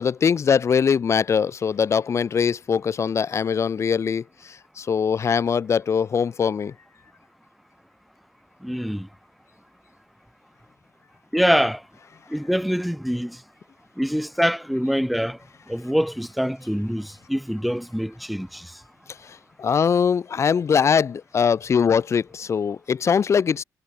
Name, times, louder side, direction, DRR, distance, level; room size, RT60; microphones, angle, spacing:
voice 1, 0.0-6.7 19.1-23.6, left 6 dB, 40° left, 0.4 m, -22 dB
voice 2, 8.6-9.1 11.3-11.8 12.3-13.4 14.0-15.4 15.7-18.7, equal, ahead, 1.4 m, -24 dB
wide cardioid pair, 130°, 7 cm